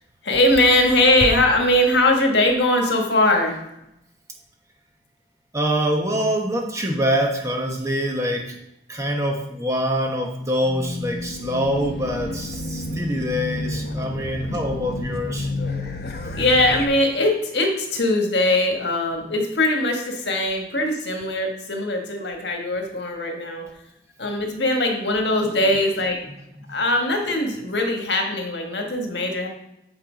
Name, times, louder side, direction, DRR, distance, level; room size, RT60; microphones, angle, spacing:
voice 1, 0.2-3.6 14.5-14.6 16.3-23.6 24.2-26.2 26.7-29.5, left 1 dB, 75° left, 2 dB, 1.6 m, -21 dB
voice 2, 5.5-8.6 8.9-15.5 26.6-26.7, equal, 15° right, 1 dB, 1.1 m, -25 dB
Race car auto racing / Alarm, 10.6-16.9, left 2 dB, 60° left, 0.9 m, -30 dB
8.7 x 4.6 x 5.1 m, 0.83 s
head